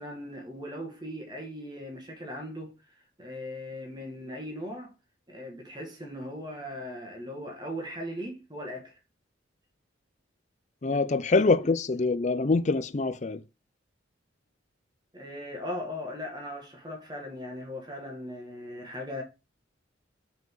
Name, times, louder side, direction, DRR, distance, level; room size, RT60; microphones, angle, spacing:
voice 1, 0.0-2.7 3.2-4.9 5.3-8.9 10.8-11.0 15.1-19.2, left 1 dB, 20° right, 1.9 m, -38 dB
voice 2, 10.8-13.4, left 3 dB, 35° left, 0.5 m, -25 dB
5.4 x 5.1 x 3.9 m
head